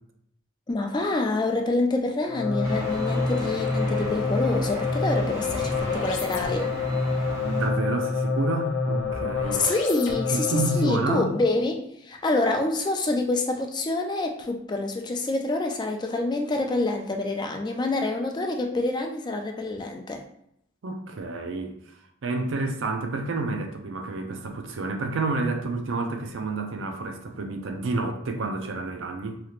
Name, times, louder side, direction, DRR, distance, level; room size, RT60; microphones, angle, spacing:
voice 1, 0.7-6.7 9.6-20.2, left 2 dB, 20° left, 3 dB, 0.3 m, -27 dB
sound 1, 2.2-11.0, left 4 dB, 75° left, 0.6 m, -27 dB
sound 2, 2.6-7.7, equal, 15° right, 0.7 m, -36 dB
voice 2, 7.3-9.7 10.3-11.3 20.8-21.8 22.2-29.4, right 3 dB, 75° right, 5 dB, 0.5 m, -29 dB
3.2 x 2.8 x 2.4 m, 0.73 s
head